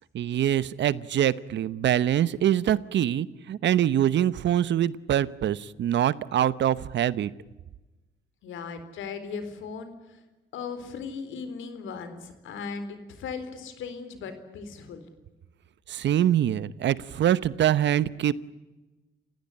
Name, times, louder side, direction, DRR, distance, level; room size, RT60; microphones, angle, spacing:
voice 1, 0.1-7.3 15.9-18.3, right 11 dB, 65° right, 18 dB, 1.0 m, -24 dB
voice 2, 8.4-9.9 10.5-15.0, left 5 dB, 80° left, 10 dB, 4.1 m, -37 dB
29.0 x 16.0 x 9.9 m, 1.1 s
cardioid pair, 90°, 20 cm